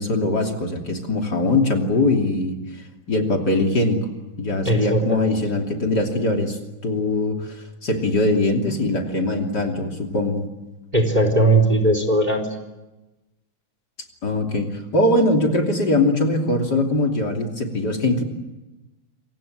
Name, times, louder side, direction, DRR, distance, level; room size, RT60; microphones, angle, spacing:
voice 1, 0.0-2.6 3.1-4.0 4.4-10.5 14.2-18.2, left 2 dB, 55° left, 2 dB, 3.6 m, -21 dB
voice 2, 4.6-5.3 10.9-12.4, right 1 dB, 20° right, 6 dB, 4.2 m, -18 dB
28.0 x 25.0 x 7.8 m, 1.0 s
omnidirectional pair, 2.2 m